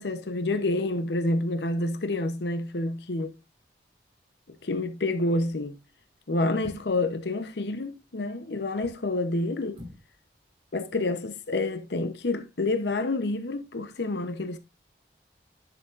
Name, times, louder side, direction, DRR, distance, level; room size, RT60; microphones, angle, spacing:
voice 1, 0.0-3.4 4.5-5.8 6.3-9.8 10.7-14.6, left 2 dB, 75° left, 0.8 m, -28 dB
sound 1, 6.6-7.1 8.6-9.1 9.7-10.1 10.4-10.5, left 1 dB, 30° right, 4.7 m, -46 dB
10.5 x 7.0 x 2.5 m
head